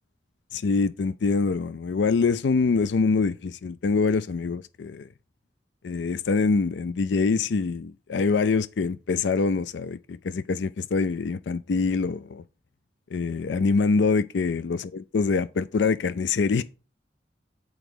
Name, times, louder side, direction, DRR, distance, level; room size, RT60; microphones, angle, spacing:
voice 1, 0.5-5.1 5.8-12.4 13.1-16.6, left 4 dB, 85° left, 0.4 m, -25 dB
7.1 x 4.9 x 6.1 m
head